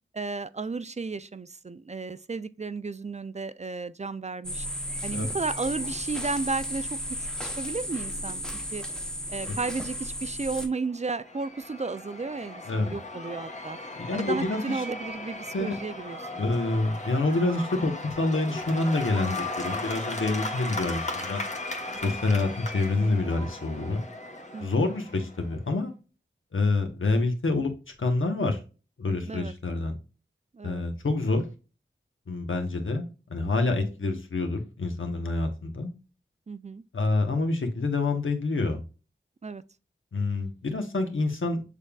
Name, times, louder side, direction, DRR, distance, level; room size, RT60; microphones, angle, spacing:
voice 1, 0.1-4.7 5.0-8.4 8.7-8.9 9.3-13.8 14.1-16.4 24.5-24.9 29.3-29.5 30.5-30.8 36.5-36.8 39.4-39.6, right 4 dB, 35° right, 0.4 m, -33 dB
sound 1, 4.4-10.7, equal, 5° left, 0.8 m, -34 dB
Cheering / Applause / Crowd, 10.8-25.5, left 2 dB, 35° left, 1.0 m, -37 dB
voice 2, 12.7-13.0 14.0-14.8 15.5-15.8 16.4-21.4 22.0-24.0 24.6-25.9 26.5-27.7 28.0-28.6 29.0-29.9 30.6-31.4 32.3-35.9 36.9-38.8 40.1-41.6, left 2 dB, 85° left, 1.0 m, -27 dB
6.5 x 3.5 x 2.3 m
wide cardioid pair, 40°, 20 cm